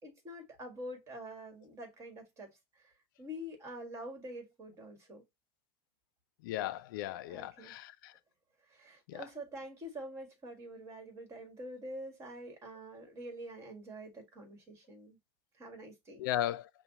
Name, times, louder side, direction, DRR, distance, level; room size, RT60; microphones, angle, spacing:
voice 1, 0.0-2.9 3.2-5.2 7.3-7.7 8.7-15.2 15.6-16.2, equal, 25° right, 1.8 m, -46 dB
voice 2, 6.4-8.1 9.1-9.2 16.2-16.7, left 13 dB, 65° left, 0.4 m, -36 dB
5.7 x 2.2 x 3.9 m
supercardioid pair, 135°, 12 cm